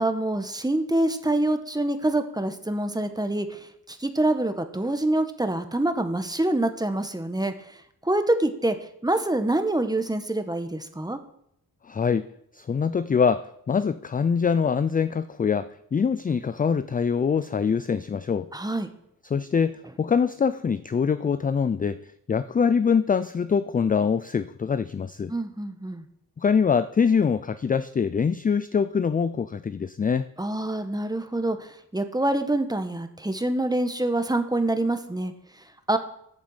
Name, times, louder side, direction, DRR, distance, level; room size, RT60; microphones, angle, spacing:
voice 1, 0.0-7.5 8.0-8.7 9.0-11.2 18.5-18.9 25.3-26.0 30.4-35.3 35.9-36.0, right 1 dB, 10° right, 8 dB, 1.2 m, -26 dB
voice 2, 11.9-12.3 12.5-18.5 19.3-22.0 22.3-25.3 26.4-30.3, left 6 dB, 25° left, 13 dB, 0.4 m, -24 dB
9.0 x 7.3 x 7.2 m, 0.74 s
cardioid pair, 80°, 37 cm